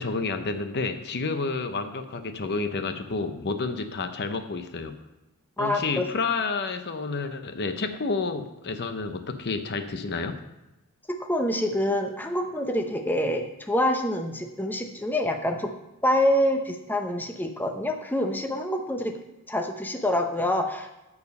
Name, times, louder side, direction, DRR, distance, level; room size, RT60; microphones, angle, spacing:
voice 1, 0.0-4.9 5.6-10.4, left 4 dB, 50° left, 8 dB, 0.7 m, -30 dB
voice 2, 5.6-6.1 11.1-15.7 16.0-19.2 19.5-20.9, left 1 dB, 10° left, 4 dB, 0.7 m, -26 dB
13.5 x 4.8 x 5.3 m, 0.97 s
head